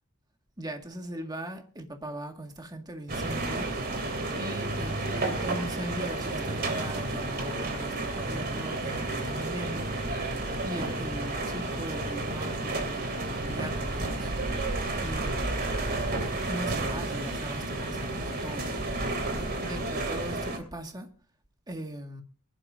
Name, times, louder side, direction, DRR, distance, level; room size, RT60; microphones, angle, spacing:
voice 1, 0.6-3.7 4.4-14.3 15.0-15.6 16.5-21.1 21.7-22.2, right 1 dB, 20° right, 2.0 m, -39 dB
sound 1, 3.1-20.6, right 2 dB, 45° right, 2.9 m, -31 dB
23.0 x 12.0 x 2.7 m
head